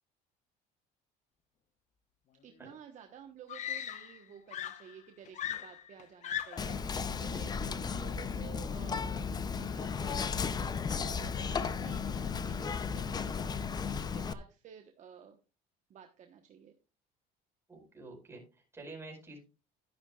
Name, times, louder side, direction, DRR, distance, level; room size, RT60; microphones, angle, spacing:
voice 1, 2.4-15.4 15.9-16.7, right 9 dB, 45° right, 4 dB, 1.2 m, -53 dB
Screaming, 2.7-2.8 3.5-4.2 4.5-6.8 7.8-8.1, left 10 dB, 45° left, 0.9 m, -39 dB
Whispering, 6.6-14.3, left 6 dB, 25° left, 0.6 m, -35 dB
voice 2, 17.7-19.4, right 2 dB, 15° right, -1 dB, 5.0 m, -48 dB
12.0 x 10.5 x 2.4 m, 0.32 s
cardioid pair, 135°, 17 cm